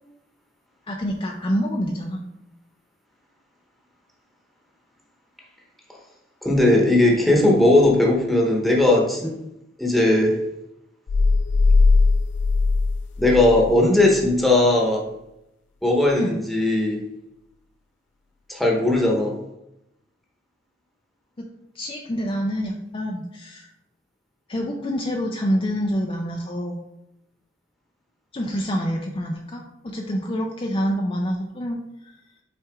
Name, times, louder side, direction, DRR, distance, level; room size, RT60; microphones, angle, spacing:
voice 1, 0.9-2.2 16.2-16.4 21.4-21.5 21.8-23.7 24.5-26.8 28.3-32.1, equal, 30° left, 1 dB, 0.5 m, -27 dB
voice 2, 6.4-9.3 9.8-10.4 13.2-15.1 15.8-17.0 18.5-19.4, left 1 dB, ahead, -1 dB, 1.1 m, -18 dB
sound 1, 11.1-13.8, left 3 dB, 85° left, 0.4 m, -19 dB
5.8 x 4.4 x 3.6 m, 0.85 s
head